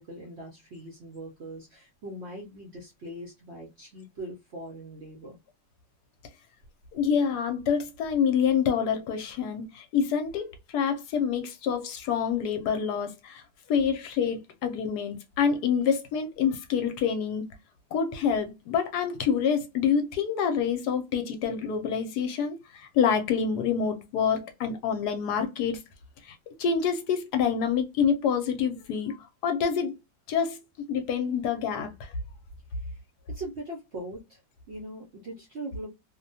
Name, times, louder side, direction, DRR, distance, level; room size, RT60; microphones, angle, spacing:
voice 1, 0.0-5.4 32.7-33.0 33.3-34.4 34.7-35.9, right 1 dB, 60° right, 0.7 m, -41 dB
voice 2, 6.9-13.4 13.7-17.4 17.9-25.8 26.6-29.1 29.4-30.0 30.3-30.6 30.9-31.9, left 7 dB, 75° left, 1.1 m, -27 dB
2.9 x 2.1 x 2.6 m
omnidirectional pair, 1.9 m